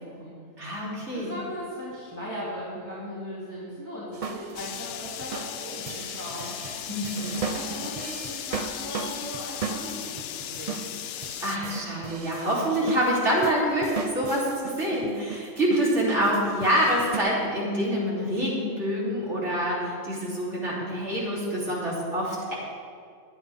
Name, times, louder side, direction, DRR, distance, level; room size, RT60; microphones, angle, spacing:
voice 1, 0.0-0.4 1.1-6.5 7.2-10.8, equal, 15° left, -9 dB, 2.4 m, -38 dB
voice 2, 0.6-1.3 6.9-7.4 11.4-22.5, equal, 60° right, -6 dB, 3.7 m, -26 dB
sound 1, 4.1-17.2, right 5 dB, 40° right, 0.6 m, -37 dB
sound 2, 4.5-11.6, left 10 dB, 65° left, 0.7 m, -37 dB
22.0 x 8.7 x 3.5 m, 2.2 s
omnidirectional pair, 1.4 m